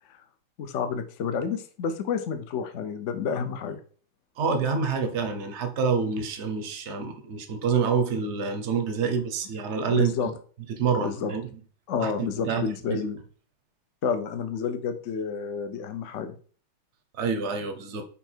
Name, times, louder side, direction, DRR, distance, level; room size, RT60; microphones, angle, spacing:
voice 1, 0.6-3.8 9.0-9.1 9.9-10.3 11.0-11.3 11.9-13.2 14.0-16.3, left 6 dB, 70° left, 0.7 m, -30 dB
voice 2, 4.4-10.3 10.7-11.4 12.0-12.1 12.4-13.0 17.2-18.0, right 5 dB, 50° right, 0.8 m, -27 dB
5.8 x 4.5 x 4.4 m
omnidirectional pair, 2.3 m